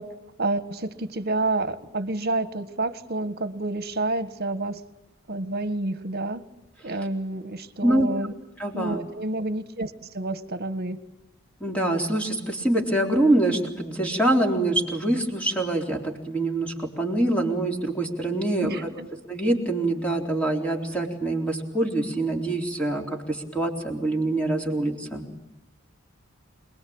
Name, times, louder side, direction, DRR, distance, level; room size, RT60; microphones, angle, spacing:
voice 1, 0.0-4.8 5.3-6.4 6.8-8.3 8.7-11.0 18.6-19.1, right 2 dB, 50° right, 12 dB, 1.6 m, -29 dB
voice 2, 8.6-9.0 11.6-18.7 19.3-25.3, right 1 dB, 5° left, 1 dB, 3.8 m, -25 dB
27.5 x 21.0 x 8.8 m, 1.0 s
head